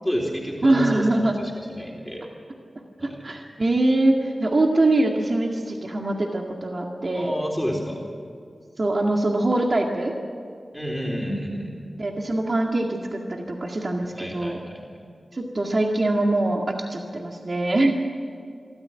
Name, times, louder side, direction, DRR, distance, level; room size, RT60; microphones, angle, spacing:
voice 1, 0.0-2.2 3.0-3.2 7.1-8.1 10.7-11.8 14.1-14.8, equal, 5° left, -2 dB, 4.0 m, -30 dB
voice 2, 0.6-1.4 3.0-7.3 8.8-10.1 12.0-14.6 15.3-17.9, right 2 dB, 50° right, 1 dB, 2.0 m, -23 dB
24.5 x 13.5 x 9.1 m, 2.3 s
wide cardioid pair, 60°, 0 cm